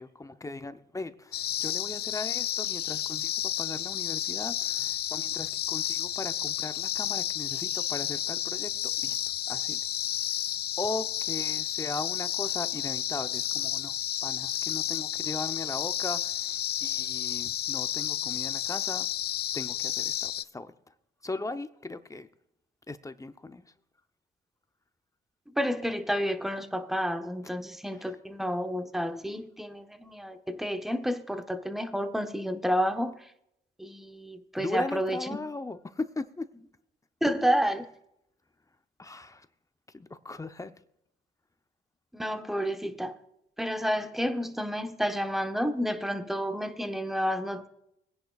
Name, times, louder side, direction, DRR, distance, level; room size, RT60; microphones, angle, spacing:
voice 1, 0.0-9.2 9.5-10.3 10.8-19.1 19.5-20.7 21.2-22.3 22.9-23.6 27.9-28.1 34.6-36.5 39.0-39.5 39.9-40.7, left 2 dB, 15° left, 0.7 m, -38 dB
sound 1, 1.3-20.4, left 12 dB, 55° left, 0.4 m, -31 dB
voice 2, 25.5-33.2 33.8-35.2 37.2-37.9 42.1-43.1 43.6-47.7, equal, ahead, 1.1 m, -30 dB
21.5 x 10.5 x 2.4 m
cardioid pair, 90°, 20 cm